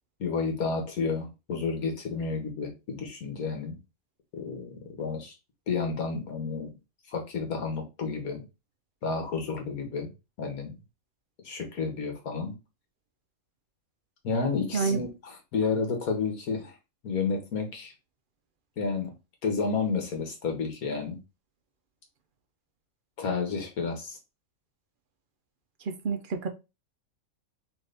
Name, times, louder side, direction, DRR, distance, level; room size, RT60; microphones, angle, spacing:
voice 1, 0.2-3.8 4.3-5.3 5.7-6.8 7.1-8.4 9.0-10.1 10.4-10.8 11.4-12.6 14.2-16.7 17.0-17.9 18.8-19.1 19.4-21.2 23.2-24.2, left 4 dB, 90° left, 1.8 m, -31 dB
voice 2, 25.8-26.5, right 5 dB, 55° right, 0.6 m, -29 dB
3.9 x 3.6 x 3.4 m
omnidirectional pair, 1.5 m